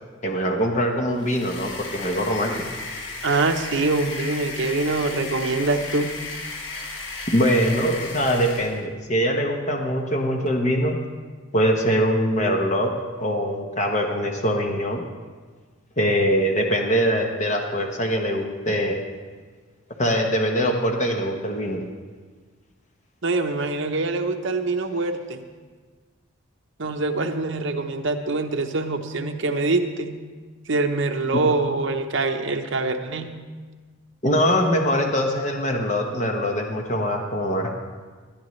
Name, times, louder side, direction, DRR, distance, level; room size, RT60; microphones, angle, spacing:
voice 1, 0.2-2.5 7.3-11.0 11.5-12.9 13.2-15.0 16.0-19.0 20.0-21.9 34.2-37.7, equal, 35° left, 2 dB, 1.0 m, -23 dB
sound 1, 1.1-8.9, left 3 dB, 60° left, 1.4 m, -35 dB
voice 2, 3.2-6.1 23.2-25.4 26.8-30.2 30.7-33.3, right 3 dB, 60° right, 4 dB, 0.9 m, -24 dB
19.0 x 11.5 x 3.2 m, 1.4 s
head